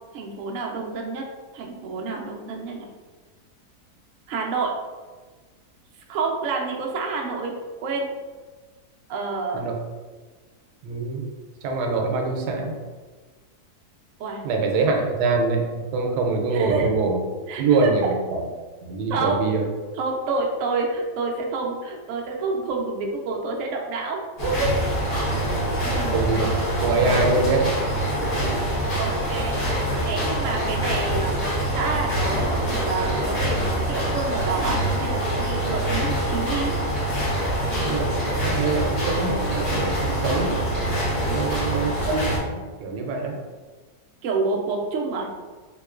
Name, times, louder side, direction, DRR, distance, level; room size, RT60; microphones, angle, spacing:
voice 1, 0.1-1.3 1.5-2.9 4.3-4.8 6.1-8.1 9.1-9.7 14.2-14.4 16.5-16.9 17.5-17.9 19.1-19.5 20.0-24.7 25.8-26.5 28.2-28.6 28.9-29.8 30.0-31.4 31.7-36.7 41.3-41.5 44.2-45.3, right 4 dB, 65° right, 0 dB, 0.8 m, -28 dB
voice 2, 10.8-11.2 11.6-12.8 14.4-17.2 17.5-18.5 18.8-19.7 25.5-26.5 26.8-27.9 37.8-40.6 41.1-43.4, right 3 dB, 90° right, 2 dB, 1.2 m, -24 dB
sound 1, 24.4-42.4, right 1 dB, 25° left, 1.1 m, -25 dB
3.6 x 2.9 x 2.4 m, 1.4 s
omnidirectional pair, 1.7 m